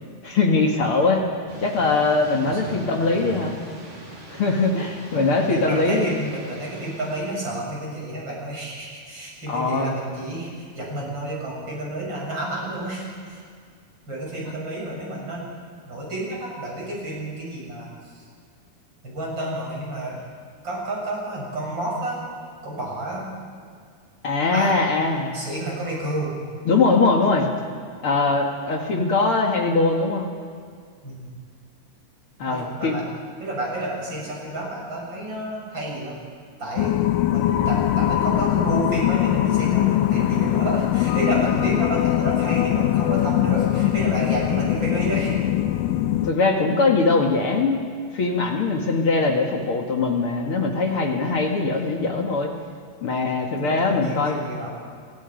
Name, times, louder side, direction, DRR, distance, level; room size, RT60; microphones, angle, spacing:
voice 1, 0.2-1.3 1.6-3.6 4.3-6.1 9.5-10.0 24.2-25.4 26.7-27.5 28.0-30.3 32.4-33.0 46.2-47.8 48.1-52.5 53.0-54.4, left 3 dB, 45° left, 2 dB, 1.9 m, -21 dB
Thunder / Rain, 1.5-7.4, right 1 dB, 70° right, 8.4 m, -41 dB
voice 2, 2.4-3.4 5.1-13.4 14.1-15.5 15.9-18.2 19.0-20.2 20.6-22.2 22.6-23.3 24.5-24.8 25.3-26.4 31.0-31.3 32.5-33.0 33.4-36.2 36.6-37.0 37.3-45.4 53.5-54.7, right 1 dB, 25° right, -4 dB, 8.0 m, -30 dB
sound 1, 36.8-46.3, left 13 dB, 85° left, 1.9 m, -21 dB
27.5 x 22.5 x 5.3 m, 2.1 s
omnidirectional pair, 4.7 m